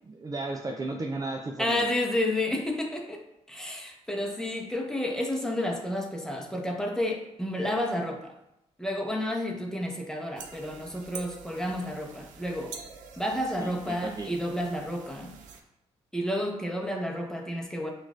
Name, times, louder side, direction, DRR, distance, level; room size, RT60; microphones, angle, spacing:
voice 1, 0.1-1.9 13.6-14.3, right 2 dB, 30° right, 2 dB, 0.5 m, -34 dB
voice 2, 1.6-3.2 3.5-8.3 8.8-12.8 13.2-15.4 16.1-17.9, left 1 dB, 5° left, 1 dB, 0.9 m, -31 dB
sound 1, 10.4-15.6, right 6 dB, 85° right, 0.5 m, -46 dB
6.0 x 2.5 x 2.4 m, 0.85 s
supercardioid pair, 60°, 13 cm